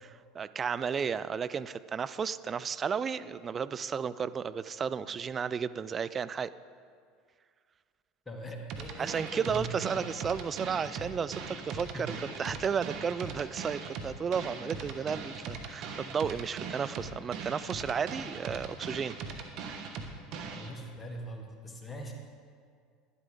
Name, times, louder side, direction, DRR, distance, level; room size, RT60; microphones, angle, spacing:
voice 1, 0.3-6.5 9.0-12.1 12.4-19.2, right 6 dB, 30° right, 14 dB, 0.4 m, -33 dB
voice 2, 8.3-10.1 10.7-11.1 11.9-12.4 14.6-14.8 20.4-22.1, right 1 dB, 20° left, 2 dB, 1.7 m, -42 dB
sound 1, 8.7-20.7, right 5 dB, 60° right, 1.3 m, -40 dB
12.0 x 11.0 x 3.8 m, 2.2 s
hypercardioid pair, 75°, 0 cm